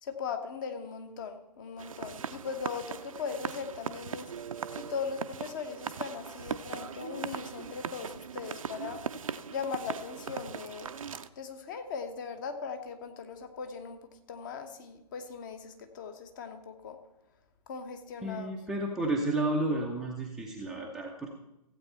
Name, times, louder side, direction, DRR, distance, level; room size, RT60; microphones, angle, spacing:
voice 1, 0.0-4.3 4.7-9.0 9.5-10.9 11.4-17.0 17.7-18.5, left 6 dB, 30° left, 7 dB, 1.0 m, -39 dB
sound 1, 1.8-11.3, right 7 dB, 55° right, 0.6 m, -39 dB
voice 2, 18.2-21.3, right 2 dB, ahead, -3 dB, 0.6 m, -31 dB
15.5 x 8.2 x 4.2 m, 0.89 s
figure-of-eight pair, 130°, 21 cm